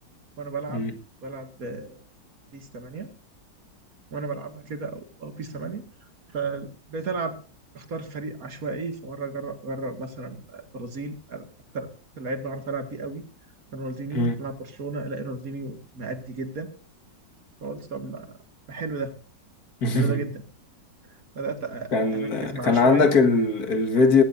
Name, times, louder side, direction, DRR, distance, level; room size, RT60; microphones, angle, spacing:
voice 1, 0.4-0.8 1.2-2.0 2.5-3.1 4.1-7.4 7.7-11.4 11.7-11.9 12.2-13.2 13.7-16.7 17.6-18.4 18.7-19.1 19.9-20.4 21.1-23.1, right 3 dB, 50° right, 2.4 m, -34 dB
voice 2, 19.8-20.2 21.9-24.2, left 4 dB, 55° left, 2.2 m, -21 dB
20.0 x 16.0 x 2.7 m
omnidirectional pair, 1.9 m